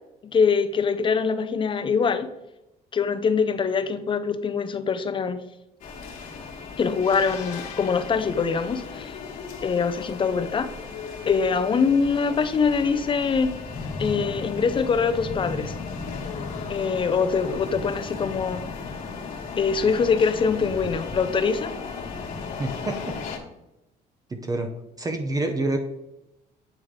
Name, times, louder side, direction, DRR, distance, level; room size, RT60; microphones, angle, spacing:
voice 1, 0.3-2.3 2.9-5.4 6.8-9.2 9.6-10.7 11.3-13.6 14.0-15.7 16.7-18.6 19.6-21.7, left 5 dB, 30° left, 10 dB, 0.5 m, -23 dB
sound 1, 5.8-23.4, left 4 dB, 55° left, 1.4 m, -35 dB
voice 2, 22.6-23.2 24.3-24.7 25.0-25.8, right 2 dB, 20° right, 5 dB, 0.6 m, -27 dB
8.7 x 3.6 x 3.2 m, 0.92 s
cardioid pair, 110°, 17 cm